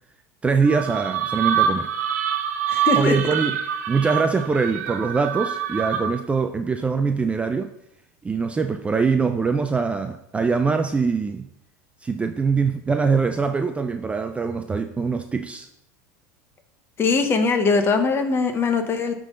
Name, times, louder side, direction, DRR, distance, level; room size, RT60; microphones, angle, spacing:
voice 1, 0.4-1.9 3.0-3.6 3.9-7.7 8.2-11.5 12.0-15.7, right 4 dB, 15° right, 6 dB, 0.4 m, -23 dB
sound 1, 0.6-6.3, right 8 dB, 90° right, 0.8 m, -25 dB
voice 2, 2.7-3.2 17.0-19.1, left 4 dB, 30° left, 7 dB, 1.0 m, -21 dB
10.5 x 3.9 x 3.8 m, 0.80 s
supercardioid pair, 120°, 8 cm